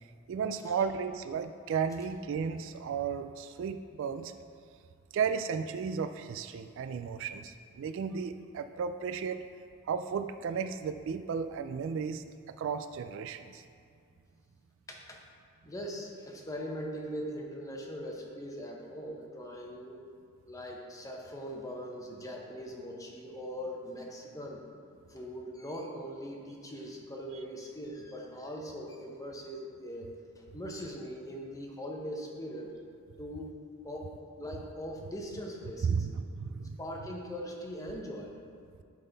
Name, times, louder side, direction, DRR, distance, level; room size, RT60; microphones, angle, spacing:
voice 1, 0.3-4.3 5.1-9.4 9.9-12.2 12.6-13.6 35.8-36.8, right 6 dB, 60° right, 9 dB, 0.3 m, -34 dB
voice 2, 14.9-15.2 15.6-20.0 20.5-24.6 25.1-32.8 33.2-36.1 36.8-38.3, equal, 15° left, 0 dB, 0.8 m, -41 dB
11.5 x 3.8 x 4.0 m, 2.3 s
head